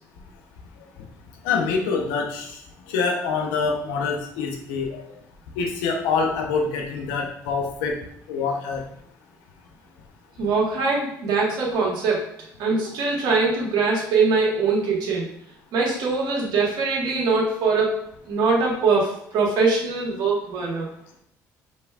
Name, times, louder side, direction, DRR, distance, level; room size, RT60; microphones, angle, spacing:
voice 1, 1.4-2.5 2.9-5.0 5.6-8.0 8.3-8.8, left 5 dB, 90° left, 2 dB, 0.7 m, -25 dB
voice 2, 10.4-12.2 12.6-15.3 15.7-17.9 18.2-20.9, right 4 dB, 70° right, -2 dB, 1.3 m, -22 dB
5.1 x 3.2 x 2.3 m, 0.72 s
supercardioid pair, 65°, 8 cm